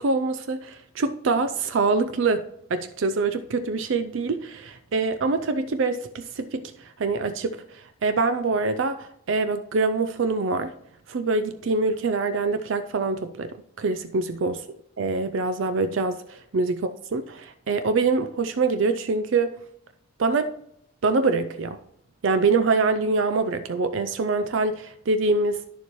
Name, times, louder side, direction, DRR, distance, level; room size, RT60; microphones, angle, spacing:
voice 1, 0.0-2.4 2.7-10.7 11.1-14.6 15.0-19.5 20.2-20.5 21.0-21.8 22.2-25.6, right 3 dB, 65° right, 0.4 m, -25 dB
10.5 x 7.0 x 3.0 m
head